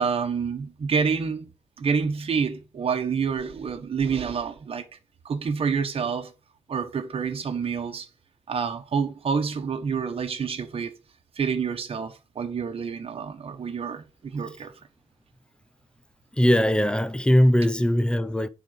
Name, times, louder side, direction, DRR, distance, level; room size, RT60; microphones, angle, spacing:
voice 1, 0.0-1.5 1.8-4.9 5.2-6.3 6.7-8.1 8.5-11.0 11.4-14.7, right 6 dB, 55° right, 1.3 m, -28 dB
voice 2, 16.3-18.5, equal, 10° left, 0.6 m, -20 dB
9.9 x 4.1 x 5.2 m
wide cardioid pair, 140°, 12 cm